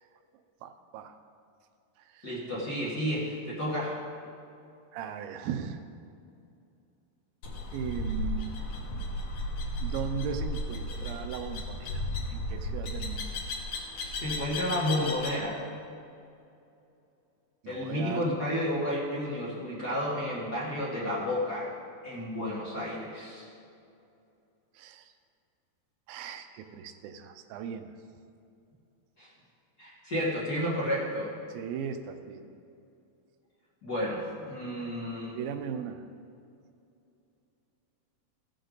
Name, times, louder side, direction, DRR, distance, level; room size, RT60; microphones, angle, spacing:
voice 1, 0.6-1.2 2.1-2.3 4.9-5.8 7.7-8.7 9.8-12.0 12.3-13.4 17.6-18.4 24.8-25.1 26.1-27.9 31.5-32.5 35.4-36.0, right 7 dB, 90° right, 7 dB, 2.5 m, -38 dB
voice 2, 2.2-4.0 14.2-15.6 17.7-21.7 22.0-23.5 29.2-29.3 29.8-31.3 33.8-35.4, left 1 dB, 40° left, -8 dB, 1.6 m, -31 dB
sound 1, 7.4-15.4, left 1 dB, 55° left, 1.7 m, -34 dB
16.0 x 6.6 x 3.9 m, 2.6 s
omnidirectional pair, 4.1 m